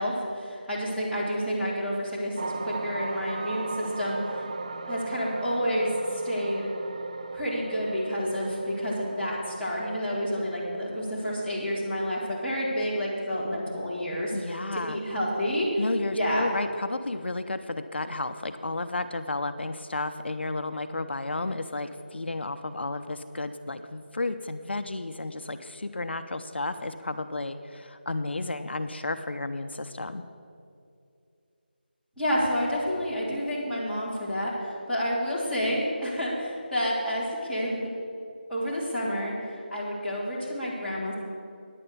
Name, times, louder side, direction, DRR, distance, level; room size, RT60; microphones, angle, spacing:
voice 1, 0.0-4.5 4.9-6.7 7.3-14.6 14.8-15.7 16.1-16.5 32.2-37.9 38.5-41.1, equal, ahead, -17 dB, 2.2 m, -29 dB
sound 1, 2.4-14.7 15.2-15.4, right 3 dB, 35° right, 0.4 m, -38 dB
voice 2, 14.3-15.0 15.8-30.2, left 2 dB, 80° left, 9 dB, 0.6 m, -32 dB
9.9 x 8.7 x 6.7 m, 2.5 s
figure-of-eight pair, 175°, 6 cm